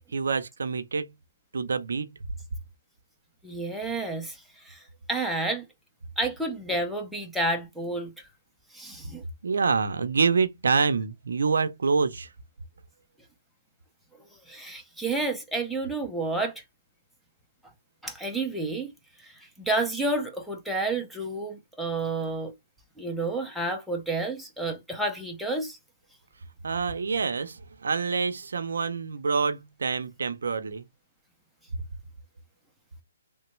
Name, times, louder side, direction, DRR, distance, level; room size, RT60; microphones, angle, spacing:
voice 1, 0.1-1.1 1.5-2.1 9.4-12.3 26.6-30.8, right 5 dB, 80° right, 0.5 m, -26 dB
voice 2, 3.4-4.4 4.7-4.8 5.1-5.6 6.2-8.1 8.7-9.2 14.5-16.5 18.0-18.9 19.2-19.3 19.6-22.5 23.0-25.8, right 2 dB, ahead, 0.5 m, -30 dB
3.1 x 2.1 x 3.0 m
hypercardioid pair, 155°, 0 cm